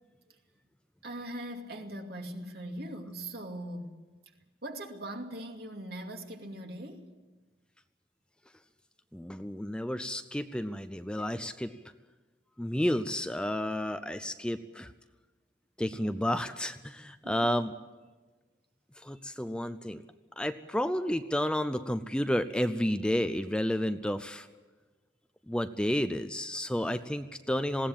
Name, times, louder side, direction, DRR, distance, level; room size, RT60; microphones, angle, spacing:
voice 1, 1.0-4.0 4.6-7.1 15.8-16.1 17.2-17.6, right 1 dB, 60° right, 2.5 m, -41 dB
voice 2, 9.1-11.7 12.6-14.9 15.8-17.7 19.0-20.0 20.4-24.5 25.5-27.9, equal, 5° left, 0.6 m, -31 dB
20.5 x 17.0 x 8.8 m
head